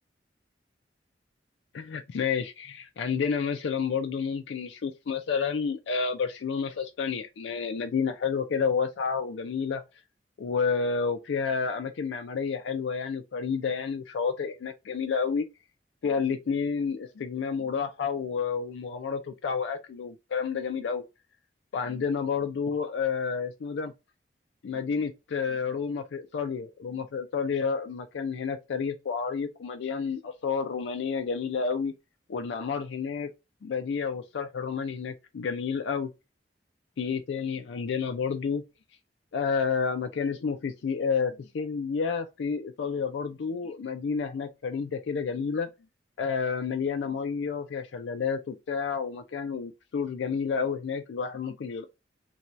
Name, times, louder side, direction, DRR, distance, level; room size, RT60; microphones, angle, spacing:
voice 1, 1.7-9.8 10.4-15.5 16.0-21.0 21.7-23.9 24.6-31.9 32.3-33.3 33.6-36.1 37.0-38.6 39.3-45.7 46.2-51.9, left 5 dB, 85° left, 0.4 m, -30 dB
2.7 x 2.2 x 3.0 m
head